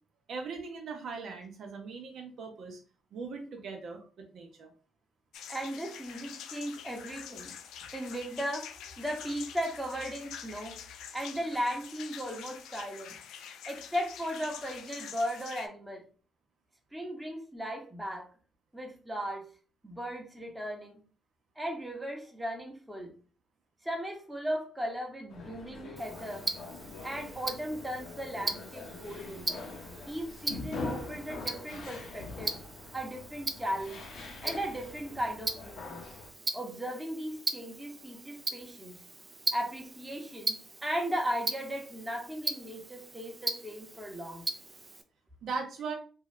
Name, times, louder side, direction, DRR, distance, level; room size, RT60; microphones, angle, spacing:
voice 1, 0.3-2.8 3.1-4.0 4.3-4.7 45.4-45.9, right 4 dB, 70° right, 3 dB, 0.6 m, -39 dB
sound 1, 5.3-15.7, left 8 dB, 85° left, 0.3 m, -46 dB
voice 2, 5.5-7.5 7.9-10.8 11.1-13.2 13.7-16.0 16.9-18.3 18.7-19.5 19.8-21.0 21.6-23.1 23.8-26.5 27.0-29.5 30.1-32.5 32.9-34.0 34.4-36.0 36.5-39.0 39.5-44.4, equal, 10° right, 1 dB, 0.9 m, -36 dB
sound 2, 25.3-36.3, left 3 dB, 65° left, 0.8 m, -43 dB
Tick-tock, 26.0-45.0, right 2 dB, 25° right, 0.4 m, -39 dB
2.7 x 2.3 x 3.2 m, 0.38 s
cardioid pair, 90°, 0 cm